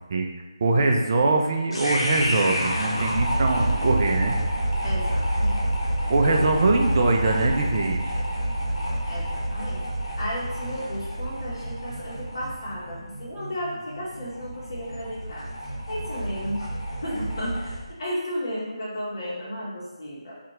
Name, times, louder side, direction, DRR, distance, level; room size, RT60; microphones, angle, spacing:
voice 1, 0.6-4.4 6.1-8.1, right 3 dB, 40° right, 2 dB, 0.3 m, -22 dB
sound 1, 1.7-17.9, right 1 dB, 70° left, 0.9 m, -28 dB
voice 2, 4.8-5.6 6.0-6.4 9.1-9.9 10.2-15.4 15.9-16.7 17.0-20.4, equal, 50° left, -7 dB, 1.1 m, -33 dB
2.7 x 2.4 x 2.9 m, 1.1 s
figure-of-eight pair, 160°, 3 cm